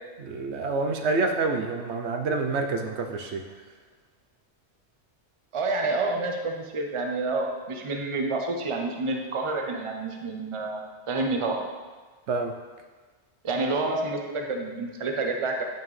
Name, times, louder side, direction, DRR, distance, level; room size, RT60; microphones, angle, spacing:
voice 1, 0.2-3.5 12.3-12.6, right 3 dB, 75° right, 4 dB, 0.9 m, -27 dB
voice 2, 5.5-10.8 11.1-11.6 13.4-15.6, right 3 dB, 30° right, 2 dB, 0.7 m, -28 dB
9.3 x 5.6 x 3.2 m, 1.4 s
omnidirectional pair, 1.2 m